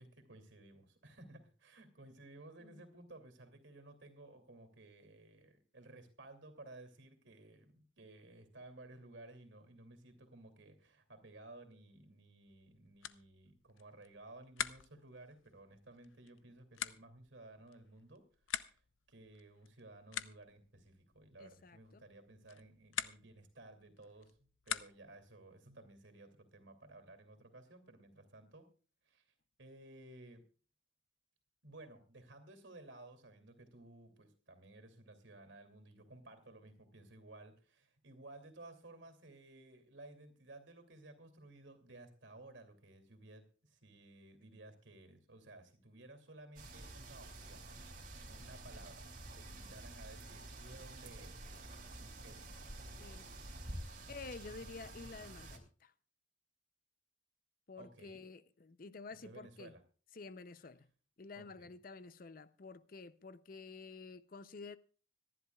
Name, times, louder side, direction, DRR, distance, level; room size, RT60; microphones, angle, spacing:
voice 1, 0.0-18.8 19.1-28.7 29.0-30.4 31.6-51.5 52.0-52.9 57.8-58.2 59.1-59.8 61.3-61.7, right 2 dB, 75° right, 2.6 m, -56 dB
sound 1, 12.5-25.3, left 10 dB, 85° left, 0.6 m, -47 dB
voice 2, 21.4-22.0 53.0-53.3 54.1-55.9 57.7-59.7 60.1-60.9 61.2-64.8, left 4 dB, 45° left, 0.6 m, -50 dB
sound 2, 46.6-55.6, right 1 dB, 45° right, 2.6 m, -49 dB
25.5 x 11.0 x 2.3 m
head